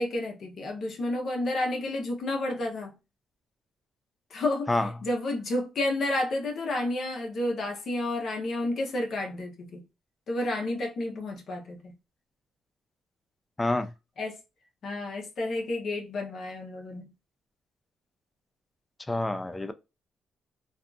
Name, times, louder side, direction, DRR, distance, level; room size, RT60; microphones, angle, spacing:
voice 1, 0.0-2.9 4.3-4.7 5.0-9.8 10.3-12.0 14.2-14.4 14.8-17.1, left 2 dB, 60° left, 0.8 m, -30 dB
voice 2, 13.6-13.9 19.1-19.7, left 2 dB, 15° left, 0.3 m, -27 dB
2.6 x 2.4 x 2.3 m
cardioid pair, 90°, 0 cm